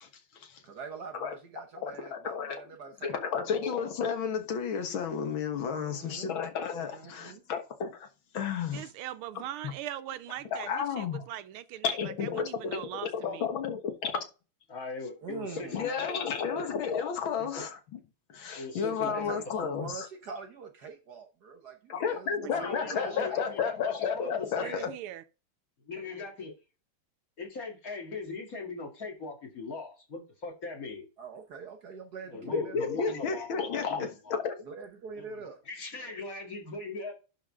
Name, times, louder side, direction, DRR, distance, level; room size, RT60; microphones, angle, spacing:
voice 1, 0.0-0.6 1.1-1.4 1.8-2.6 3.0-8.1 8.3-8.9 9.6-9.7 10.5-11.3 11.8-14.3 15.7-18.0 18.3-20.1 21.9-24.9 32.4-34.6, left 6 dB, 65° left, 2.0 m, -32 dB
voice 2, 0.6-3.4 5.7-6.4 6.8-7.4 15.2-15.8 18.8-19.4 19.8-23.5 31.2-32.9 34.6-35.6, right 5 dB, 55° right, 1.3 m, -44 dB
voice 3, 8.7-13.5 22.4-22.5 24.6-25.2, right 12 dB, 80° right, 1.5 m, -41 dB
voice 4, 14.7-16.7 17.4-17.6 18.5-19.4 19.6-19.9 22.5-24.8 25.8-26.5 27.4-31.1 32.3-33.5 33.9-34.4 35.2-35.3 35.7-37.1, left 3 dB, 40° left, 2.6 m, -40 dB
11.0 x 4.0 x 3.6 m
omnidirectional pair, 2.4 m